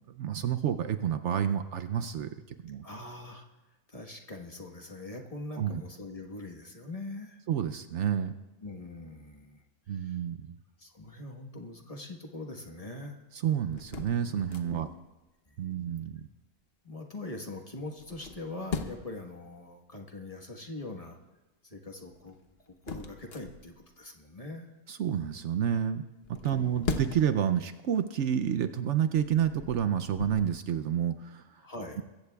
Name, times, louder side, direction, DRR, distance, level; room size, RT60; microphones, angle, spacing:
voice 1, 0.1-2.3 2.6-2.8 5.6-5.8 7.5-8.4 9.9-10.5 13.4-14.9 15.6-16.3 24.9-26.0 26.3-31.6, right 9 dB, 65° right, 10 dB, 0.9 m, -29 dB
voice 2, 2.8-3.4 3.9-7.4 8.6-10.2 10.8-13.2 14.7-15.0 15.5-15.6 16.8-21.2 21.6-22.4 22.7-24.7 26.5-26.8 31.6-32.0, left 2 dB, 30° left, 2 dB, 1.4 m, -42 dB
sound 1, 13.7-15.0 17.9-19.2 22.1-23.9 26.2-27.5 28.0-28.2 29.0-30.5, left 5 dB, 50° left, 1.1 m, -39 dB
23.0 x 15.0 x 2.3 m, 1.1 s
omnidirectional pair, 1.4 m